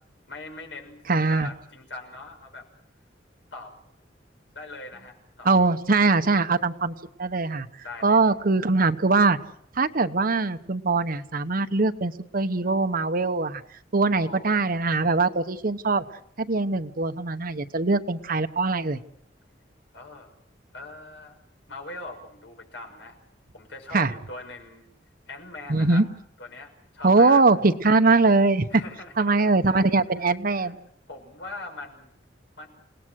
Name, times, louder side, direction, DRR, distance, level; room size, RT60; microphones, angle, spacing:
voice 1, 0.3-1.0 1.3-2.7 3.5-3.7 4.5-5.5 7.8-8.3 14.0-14.6 19.9-20.3 20.7-21.4 21.7-23.2 23.5-24.9 25.3-26.1 26.4-27.5 28.7-29.8 30.2-30.7 31.1-32.1 32.6-32.7, left 2 dB, 85° left, 3 dB, 6.1 m, -41 dB
voice 2, 1.1-1.5 5.4-7.7 8.0-9.4 9.8-13.6 13.9-16.0 16.4-19.0 23.9-24.1 25.7-26.0 27.0-28.7 29.2-30.8, right 3 dB, 50° right, 10 dB, 1.1 m, -22 dB
29.0 x 18.5 x 6.4 m, 0.67 s
head